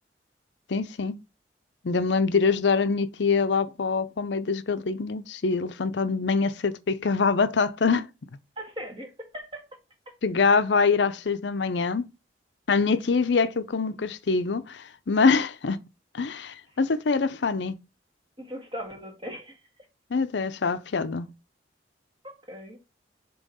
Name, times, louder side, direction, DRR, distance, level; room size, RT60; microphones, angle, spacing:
voice 1, 0.7-1.2 1.8-8.1 10.2-12.1 12.7-15.8 16.1-17.8 20.1-21.3, left 4 dB, 70° left, 0.6 m, -24 dB
voice 2, 8.5-9.6 10.0-10.2 16.7-16.8 18.4-19.9 22.2-22.8, equal, 25° right, 1.7 m, -39 dB
7.2 x 3.0 x 5.4 m
head